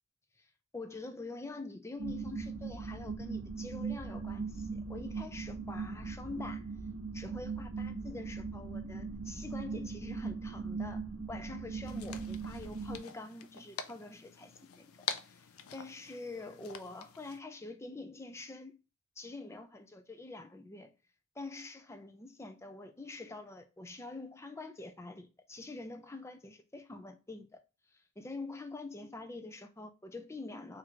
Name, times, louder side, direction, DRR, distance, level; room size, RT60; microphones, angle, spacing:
voice 1, 0.7-6.7 7.1-14.9 15.2-18.7 19.2-20.9 21.4-27.6 27.9-30.8, left 2 dB, 15° left, 0.4 m, -45 dB
sound 1, 2.0-13.0, right 4 dB, 75° right, 0.8 m, -39 dB
sound 2, 11.9-17.4, left 8 dB, 75° left, 0.4 m, -45 dB
2.9 x 2.5 x 4.3 m
head